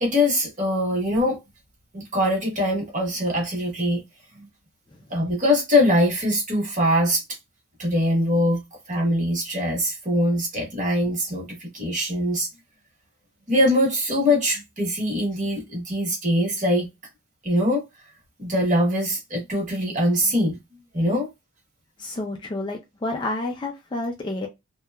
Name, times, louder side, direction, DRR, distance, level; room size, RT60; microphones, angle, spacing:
voice 1, 0.0-1.4 1.9-4.0 4.3-4.5 5.1-7.2 7.8-8.6 8.9-12.5 13.5-16.9 17.4-17.8 18.4-20.6 20.9-21.3, left 1 dB, 35° right, 1.1 m, -22 dB
voice 2, 22.0-24.5, left 2 dB, 20° left, 0.3 m, -29 dB
2.8 x 2.2 x 2.2 m
head